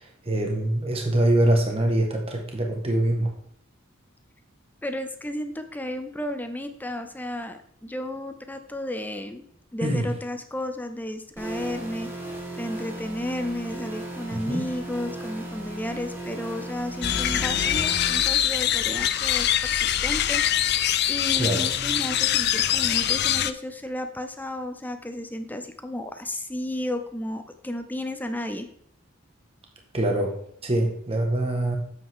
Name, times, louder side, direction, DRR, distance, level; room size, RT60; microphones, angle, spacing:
voice 1, 0.0-3.3 9.8-10.1 14.3-14.6 21.4-21.7 29.9-31.8, right 1 dB, 30° right, 1 dB, 1.5 m, -24 dB
voice 2, 4.8-9.4 9.7-12.1 12.6-20.8 21.1-28.7, left 1 dB, 10° left, 7 dB, 0.6 m, -33 dB
sound 1, 11.4-18.2, right 1 dB, 10° right, 2.3 m, -36 dB
sound 2, 17.0-23.5, left 11 dB, 55° left, 0.5 m, -23 dB
9.0 x 7.9 x 3.7 m, 0.67 s
head